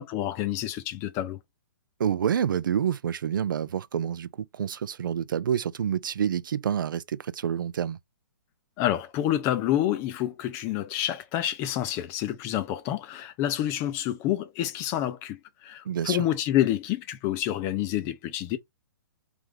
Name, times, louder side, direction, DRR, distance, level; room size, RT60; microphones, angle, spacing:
voice 1, 0.0-1.4 8.8-18.6, left 12 dB, 25° left, 0.5 m, -28 dB
voice 2, 2.0-8.0 15.8-16.3, right 8 dB, 75° right, 0.5 m, -28 dB
3.5 x 3.1 x 3.6 m
hypercardioid pair, 155°, 11 cm